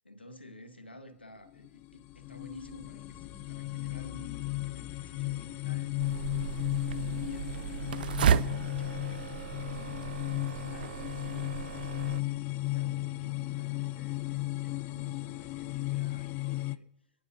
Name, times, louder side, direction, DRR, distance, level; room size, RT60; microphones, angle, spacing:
voice 1, 0.0-6.0 6.4-9.3 9.5-12.2 12.6-16.9, left 1 dB, 85° left, 1.5 m, -51 dB
sound 1, 1.5-16.8, left 20 dB, 35° left, 0.4 m, -35 dB
sound 2, 2.8-16.4, right 2 dB, 5° right, 0.8 m, -56 dB
sound 3, 6.0-12.2, right 9 dB, 60° right, 0.5 m, -33 dB
29.5 x 10.0 x 2.7 m
figure-of-eight pair, 105°, 6 cm